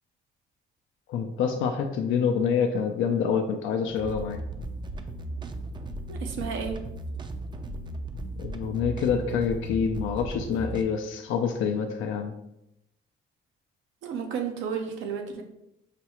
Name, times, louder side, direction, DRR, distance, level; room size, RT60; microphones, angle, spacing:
voice 1, 1.1-4.4 8.4-12.3, left 6 dB, 85° left, 4 dB, 0.4 m, -27 dB
sound 1, 3.9-10.8, right 2 dB, 25° right, 0.4 m, -36 dB
voice 2, 6.1-6.8 14.0-15.4, right 6 dB, 90° right, 4 dB, 0.7 m, -32 dB
5.8 x 2.3 x 2.9 m, 0.83 s
cardioid pair, 90°, 20 cm